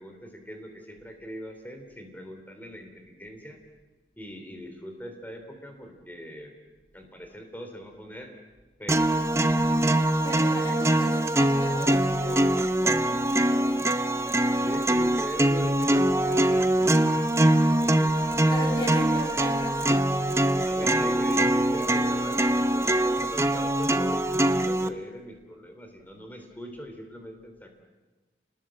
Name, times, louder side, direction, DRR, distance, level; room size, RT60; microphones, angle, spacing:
voice 1, 0.0-3.6 4.2-6.5 6.9-8.3 8.8-9.2 14.6-18.8 20.6-27.7, equal, 10° left, 4 dB, 3.4 m, -41 dB
sound 1, 8.9-24.9, right 1 dB, 15° right, 0.8 m, -23 dB
voice 2, 10.2-14.0 18.5-20.0 22.7-22.9, equal, 25° left, 0 dB, 2.4 m, -37 dB
29.0 x 20.0 x 7.7 m, 1.2 s
head